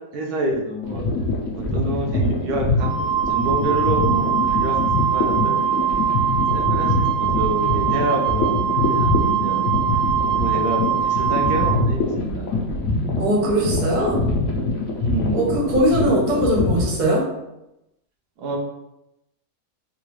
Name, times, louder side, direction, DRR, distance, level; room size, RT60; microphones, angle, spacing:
voice 1, 0.1-1.0 1.7-6.0 6.5-9.7 10.2-12.6 15.0-15.5 18.4-18.6, right 1 dB, 80° right, 1 dB, 1.2 m, -28 dB
sound 1, 0.8-16.9, left 2 dB, 70° left, 1.0 m, -24 dB
Wind instrument woodwind instrument, 2.8-11.8, right 9 dB, 35° left, 1.1 m, -22 dB
voice 2, 13.2-14.2 15.3-17.2, right 1 dB, 40° right, -2 dB, 0.7 m, -20 dB
3.8 x 2.3 x 3.0 m, 0.89 s
omnidirectional pair, 1.6 m